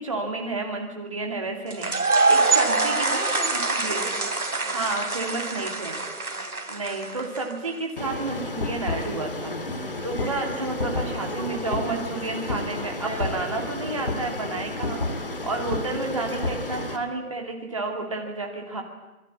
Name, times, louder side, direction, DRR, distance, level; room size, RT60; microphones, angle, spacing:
voice 1, 0.0-3.2 3.5-4.2 4.7-6.0 6.7-9.6 10.0-15.0 15.4-18.8, right 3 dB, 20° right, 2 dB, 2.5 m, -31 dB
sound 1, 1.7-7.7, right 3 dB, 70° right, 3.3 m, -25 dB
voice 2, 2.9-5.0 5.5-6.6 7.1-7.2 10.9-12.0 13.0-13.5 16.3-16.4, right 2 dB, 55° right, 1 dB, 6.9 m, -40 dB
sound 2, 8.0-17.0, left 2 dB, 35° left, 2.3 m, -31 dB
26.5 x 21.5 x 8.6 m, 1.1 s
figure-of-eight pair, 175°, 45 cm